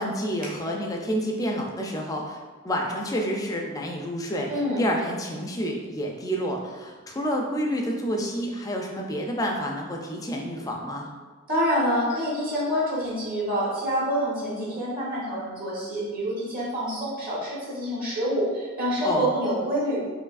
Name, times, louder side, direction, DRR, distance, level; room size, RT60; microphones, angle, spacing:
voice 1, 0.0-2.4 2.6-4.5 4.8-11.1 19.0-19.3, equal, 15° left, 0 dB, 0.4 m, -29 dB
voice 2, 4.5-4.8 11.5-20.1, equal, 45° right, -7 dB, 1.1 m, -27 dB
4.6 x 2.6 x 2.4 m, 1.4 s
head